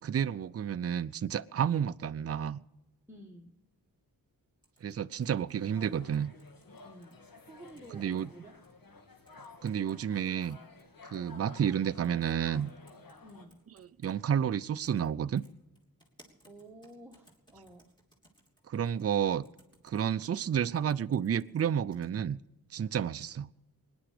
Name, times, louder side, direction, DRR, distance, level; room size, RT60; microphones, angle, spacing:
voice 1, 0.0-2.6 4.8-6.3 7.9-8.3 9.6-10.6 11.1-12.7 14.0-15.4 18.7-19.5 19.8-22.4 22.7-23.5, right 8 dB, 40° right, 13 dB, 0.5 m, -30 dB
voice 2, 3.1-3.6 6.8-8.5 11.2-11.5 13.2-13.6 16.5-17.9, right 1 dB, 5° right, 0 dB, 1.3 m, -52 dB
sound 1, 4.6-7.1 7.6-8.2 8.6-8.7 9.3-10.0 10.3-11.3 12.0-12.3 12.6-14.1 14.8-15.1 15.4-22.1, equal, 10° left, 3.3 m, -64 dB
sound 2, 5.6-13.5, left 3 dB, 70° left, 1.8 m, -53 dB
24.0 x 10.5 x 5.0 m, 0.93 s
wide cardioid pair, 110°, 36 cm